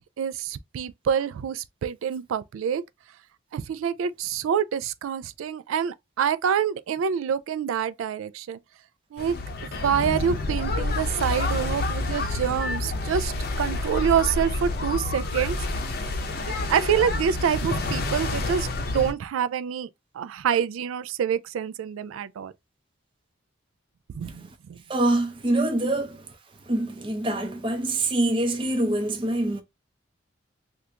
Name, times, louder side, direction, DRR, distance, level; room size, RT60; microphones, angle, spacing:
voice 1, 0.2-2.8 3.5-8.6 9.1-9.3 9.6-15.6 16.5-19.9 20.1-22.5 24.1-24.4 24.7-24.8, right 8 dB, 90° right, 0.3 m, -26 dB
sound 1, 9.2-19.1, left 2 dB, 50° left, 0.6 m, -28 dB
voice 2, 24.9-26.2 26.7-29.6, right 1 dB, 25° right, 0.5 m, -25 dB
3.3 x 2.5 x 2.8 m
head